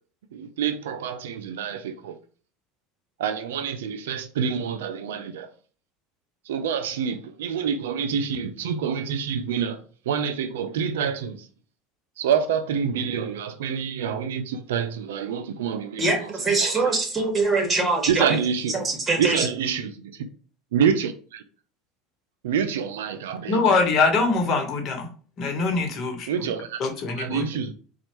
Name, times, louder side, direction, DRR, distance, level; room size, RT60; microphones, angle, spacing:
voice 1, 0.3-2.2 3.2-5.5 6.4-11.5 12.2-17.0 18.1-18.7 19.2-20.3 20.7-21.4 22.4-23.6 26.3-26.8 27.2-27.7, right 7 dB, 85° right, 0.4 m, -27 dB
voice 2, 16.0-18.3 18.7-19.5, right 3 dB, 25° right, 1.5 m, -23 dB
voice 3, 23.5-25.1 25.4-26.3 26.8-27.4, left 4 dB, 50° left, 1.1 m, -23 dB
4.3 x 2.3 x 2.9 m
hypercardioid pair, 95°, 0 cm